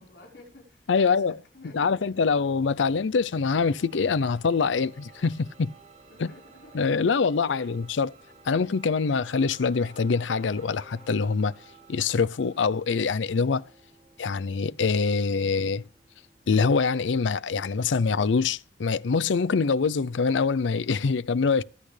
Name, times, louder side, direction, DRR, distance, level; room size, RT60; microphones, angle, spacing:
voice 1, 0.0-1.2 1.5-2.4 6.1-6.8 7.4-7.8, left 2 dB, 70° left, 4.5 m, -50 dB
voice 2, 0.9-1.3 1.7-5.7 6.2-6.3 6.7-8.1 8.5-11.5 11.9-13.6 14.2-15.8 16.5-21.6, left 5 dB, 85° left, 0.5 m, -24 dB
sound 1, 3.5-19.1, right 4 dB, 40° right, 4.9 m, -55 dB
Bowed string instrument, 7.9-11.5, left 4 dB, 45° left, 4.3 m, -55 dB
24.0 x 8.6 x 3.3 m
head